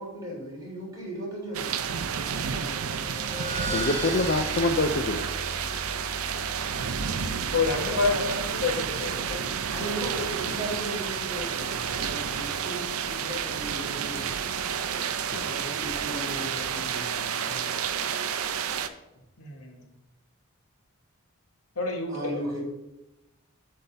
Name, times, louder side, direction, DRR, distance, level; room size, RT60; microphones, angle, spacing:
voice 1, 0.0-3.3 9.7-14.4 15.4-17.8 22.1-22.6, right 1 dB, 15° right, -5 dB, 3.1 m, -37 dB
sound 1, 1.5-18.9, right 7 dB, 75° right, 0.5 m, -30 dB
sound 2, 2.7-9.8, right 2 dB, 40° right, 2.9 m, -38 dB
voice 2, 3.6-5.5 15.3-15.6, left 2 dB, 45° left, 5 dB, 0.4 m, -26 dB
voice 3, 7.5-9.4 19.4-19.9 21.8-22.4, left 4 dB, 85° left, 2 dB, 1.5 m, -28 dB
8.2 x 3.8 x 6.7 m, 0.96 s
head